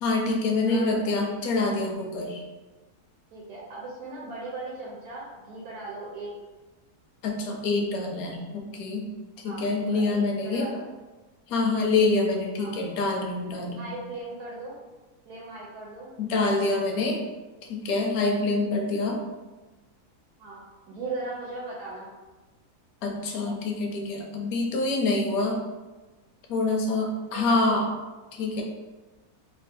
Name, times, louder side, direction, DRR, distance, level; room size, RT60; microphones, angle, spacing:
voice 1, 0.0-2.4 7.2-9.1 9.4-10.7 11.5-14.0 16.2-17.2 17.7-19.2 23.0-25.6 26.5-27.9 28.3-28.6, left 3 dB, 75° left, 1 dB, 1.0 m, -26 dB
voice 2, 0.6-1.1 3.3-6.3 9.4-10.9 12.6-12.7 13.8-14.8 15.3-16.1 20.4-22.1 27.3-27.9, right 2 dB, 90° right, -5 dB, 1.2 m, -38 dB
3.1 x 2.4 x 2.6 m, 1.2 s
omnidirectional pair, 1.6 m